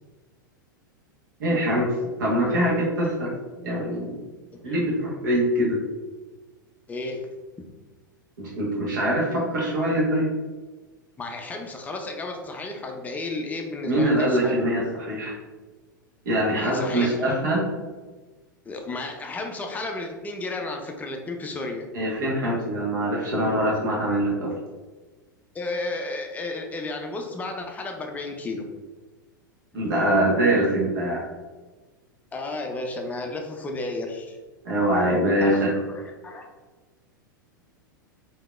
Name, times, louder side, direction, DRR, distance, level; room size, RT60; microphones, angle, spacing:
voice 1, 1.4-1.9 2.2-3.3 3.6-4.2 4.6-5.8 8.4-10.3 13.8-15.3 16.2-17.6 21.9-24.5 29.7-31.2 34.6-35.7, right 1 dB, 65° right, -4 dB, 1.2 m, -23 dB
voice 2, 6.9-7.3 11.2-14.6 16.5-17.3 18.7-21.9 25.5-28.6 32.3-34.4 35.4-36.5, left 2 dB, 15° left, 3 dB, 0.5 m, -33 dB
3.6 x 2.8 x 2.3 m, 1.3 s
figure-of-eight pair, 95°, 11 cm